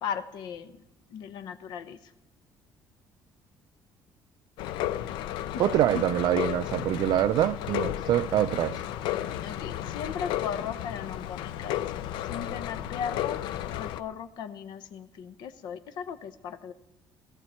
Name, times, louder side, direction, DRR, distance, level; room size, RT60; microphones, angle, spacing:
voice 1, 0.0-0.7 1.1-2.0 5.5-5.6 5.9-6.0 9.4-11.9 12.3-13.4 13.8-16.7, left 7 dB, 70° left, 0.9 m, -37 dB
sound 1, 4.6-14.0, left 12 dB, 90° left, 0.6 m, -33 dB
voice 2, 5.6-8.8, right 13 dB, 65° right, 0.4 m, -25 dB
17.5 x 13.5 x 4.4 m
cardioid pair, 140°, 8 cm